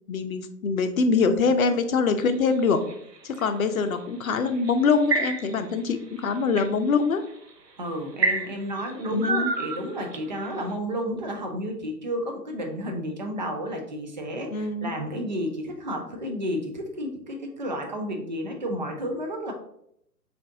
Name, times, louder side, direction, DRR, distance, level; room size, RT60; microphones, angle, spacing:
voice 1, 0.1-2.8 3.2-7.2 9.1-9.5 14.5-14.9, left 4 dB, 60° left, 8 dB, 0.6 m, -24 dB
sound 1, 2.2-3.5 4.5-5.7 6.2-6.7 7.4-7.5 8.2-10.4, right 3 dB, 80° right, 0.8 m, -28 dB
voice 2, 7.8-19.5, equal, 30° right, 3 dB, 0.4 m, -32 dB
6.0 x 2.6 x 2.6 m, 0.73 s
figure-of-eight pair, 130°, 49 cm